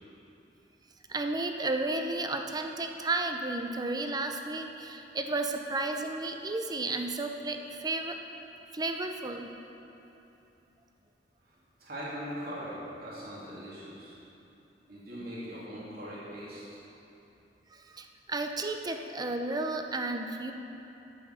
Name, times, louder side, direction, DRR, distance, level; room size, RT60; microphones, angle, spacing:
voice 1, 1.1-8.2 8.7-9.5 17.7-20.5, right 2 dB, 25° right, 5 dB, 0.6 m, -33 dB
voice 2, 11.8-14.2 14.9-16.8, equal, 60° right, -8 dB, 2.7 m, -41 dB
9.1 x 8.0 x 6.6 m, 3.0 s
head